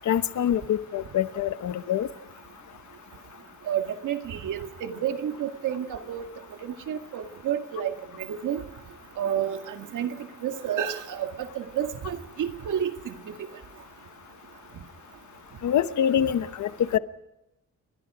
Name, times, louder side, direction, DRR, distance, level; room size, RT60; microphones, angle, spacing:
voice 1, 0.0-2.1 15.6-17.0, left 10 dB, 65° left, 13 dB, 1.0 m, -25 dB
voice 2, 3.7-6.2 6.6-8.6 9.2-13.1, right 9 dB, 80° right, 6 dB, 2.1 m, -30 dB
29.5 x 24.0 x 5.0 m, 0.92 s
cardioid pair, 145°, 30 cm